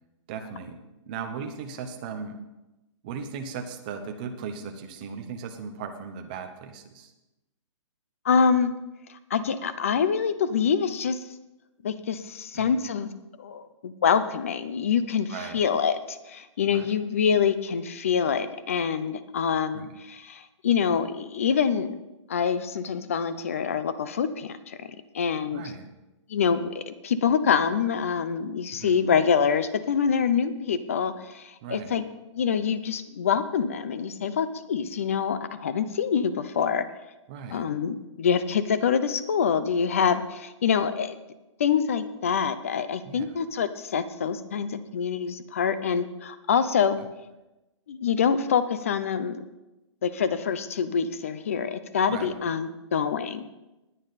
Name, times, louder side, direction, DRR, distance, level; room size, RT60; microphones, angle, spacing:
voice 1, 0.3-0.8 1.1-2.4 3.0-7.1 12.5-12.7 15.3-15.6 16.7-16.9 19.7-19.9 25.5-25.9 28.7-29.0 31.6-32.0 37.3-37.7 43.0-43.4 47.0-47.1 52.1-52.3, right 6 dB, 15° right, 5 dB, 0.8 m, -37 dB
voice 2, 8.2-8.7 9.1-11.2 11.8-13.1 13.4-22.0 22.3-24.9 25.1-25.6 26.3-32.1 32.3-36.9 37.5-41.2 41.6-47.0 47.9-49.4 50.0-53.4, left 6 dB, 25° left, 13 dB, 0.5 m, -25 dB
20.0 x 8.7 x 4.1 m, 0.99 s
hypercardioid pair, 180°, 16 cm